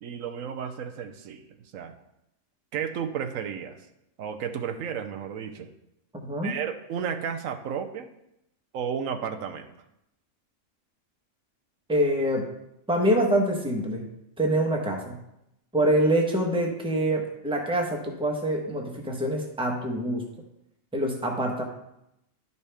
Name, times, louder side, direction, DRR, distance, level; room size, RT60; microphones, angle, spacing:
voice 1, 0.0-1.5 1.7-1.9 2.7-3.8 4.2-5.7 6.4-8.1 8.7-9.7, right 7 dB, 85° right, 6 dB, 1.1 m, -33 dB
voice 2, 6.2-6.6 11.9-12.5 12.9-14.1 14.4-15.2 15.7-20.3 20.9-21.6, right 1 dB, 5° right, 1 dB, 1.0 m, -25 dB
11.0 x 5.4 x 3.4 m, 0.82 s
omnidirectional pair, 1.4 m